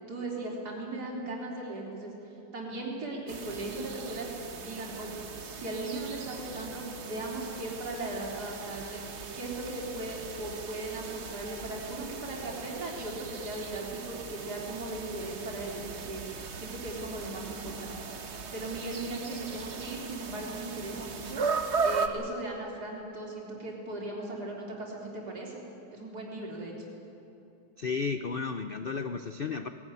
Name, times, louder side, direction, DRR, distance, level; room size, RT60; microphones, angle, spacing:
voice 1, 0.1-2.1 2.5-5.3 5.6-9.0 9.3-21.4 21.8-25.6 25.9-26.9, right 2 dB, 60° right, -3 dB, 4.3 m, -38 dB
sound 1, 3.3-22.1, right 5 dB, 45° right, 1.3 m, -38 dB
voice 2, 27.8-29.7, left 5 dB, 90° left, 9 dB, 0.4 m, -33 dB
19.5 x 17.5 x 9.9 m, 2.9 s
omnidirectional pair, 2.0 m